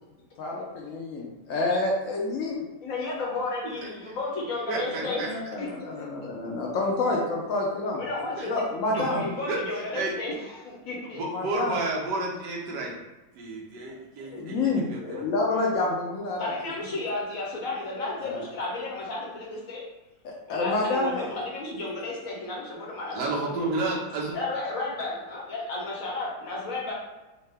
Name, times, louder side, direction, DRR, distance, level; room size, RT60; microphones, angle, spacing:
voice 1, 0.4-1.2 1.5-2.5 5.0-8.0 8.5-9.2 11.2-11.8 14.2-16.5 18.2-18.4 20.2-21.3, left 2 dB, 85° left, -2 dB, 0.7 m, -28 dB
voice 2, 2.8-6.1 7.9-11.2 16.4-19.8 20.5-23.7 24.3-26.9, left 2 dB, 60° left, -4 dB, 1.0 m, -33 dB
voice 3, 4.7-5.3 8.2-8.5 9.0-9.6 9.9-10.1 11.1-13.0 13.3-15.2 23.1-24.4, right 3 dB, 70° right, -2 dB, 1.3 m, -31 dB
3.7 x 2.1 x 3.3 m, 1.1 s
omnidirectional pair, 2.0 m